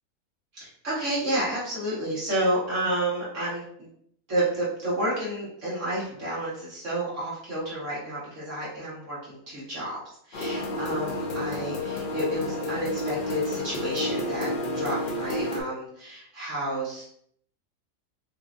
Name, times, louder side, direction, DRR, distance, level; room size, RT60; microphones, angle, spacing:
voice 1, 0.5-3.9 4.3-10.0 10.2-17.0, right 1 dB, 55° right, -8 dB, 1.9 m, -30 dB
sound 1, 10.3-15.6, left 1 dB, 65° left, 0.5 m, -30 dB
4.7 x 2.6 x 2.5 m, 0.65 s
omnidirectional pair, 1.6 m